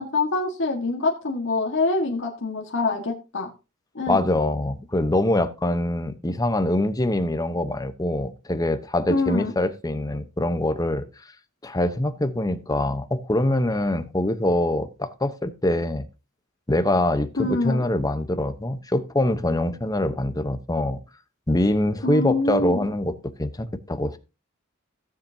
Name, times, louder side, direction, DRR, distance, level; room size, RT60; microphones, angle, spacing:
voice 1, 0.0-3.5 3.9-4.2 9.1-9.5 17.4-17.8 22.0-22.9, left 3 dB, 65° left, 1.6 m, -25 dB
voice 2, 4.1-11.0 11.6-16.0 16.7-21.0 21.5-24.2, left 1 dB, 20° left, 0.9 m, -24 dB
16.0 x 7.3 x 2.8 m
head